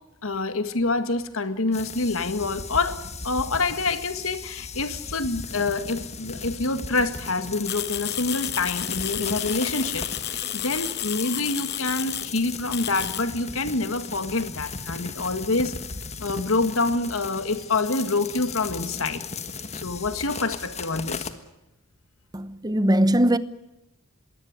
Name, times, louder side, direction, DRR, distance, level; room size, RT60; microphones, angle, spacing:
voice 1, 0.2-3.0 3.2-10.1 10.5-15.8 16.2-19.2 19.7-21.3, left 3 dB, 70° left, 1.8 m, -26 dB
sound 1, 1.7-21.3, left 5 dB, 30° left, 1.5 m, -37 dB
sound 2, 7.7-12.3 12.7-13.2, left 13 dB, 50° left, 0.9 m, -32 dB
voice 2, 22.3-23.4, right 1 dB, 20° right, 0.9 m, -20 dB
22.0 x 17.5 x 9.6 m
head